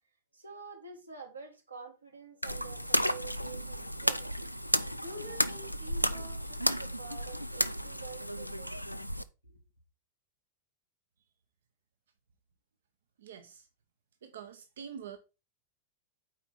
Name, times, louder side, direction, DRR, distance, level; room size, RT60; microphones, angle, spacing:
voice 1, 0.3-4.3 5.0-8.8 9.4-9.6, right 4 dB, 80° right, 1.7 m, -48 dB
sound 1, 2.4-9.2, equal, 90° left, 0.4 m, -33 dB
voice 2, 13.2-13.6 14.2-15.2, right 8 dB, 65° right, 0.8 m, -45 dB
8.4 x 4.5 x 4.2 m
figure-of-eight pair, 90°, 0 cm